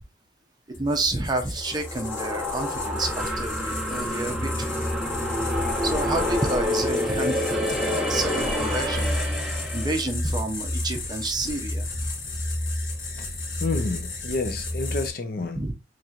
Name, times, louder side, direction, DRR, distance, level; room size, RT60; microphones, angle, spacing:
sound 1, 0.7-15.1, left 1 dB, 85° left, 1.3 m, -32 dB
voice 1, 0.8-4.7 5.8-9.1 9.7-11.9 15.6-15.7, right 2 dB, 25° right, 0.6 m, -29 dB
sound 2, 1.7-10.0, left 1 dB, 5° right, 1.0 m, -28 dB
voice 2, 13.6-15.6, left 3 dB, 50° left, 0.6 m, -29 dB
4.3 x 3.2 x 2.4 m
head